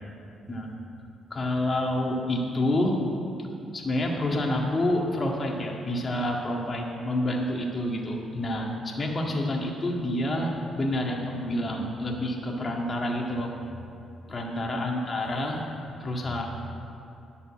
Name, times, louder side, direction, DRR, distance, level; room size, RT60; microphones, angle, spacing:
voice 1, 1.3-3.0 3.4-3.5 3.7-10.5 10.8-13.5 14.3-15.6 16.0-16.5, left 1 dB, 30° left, -1 dB, 1.9 m, -28 dB
11.0 x 6.9 x 7.4 m, 2.6 s
cardioid pair, 90°, 0 cm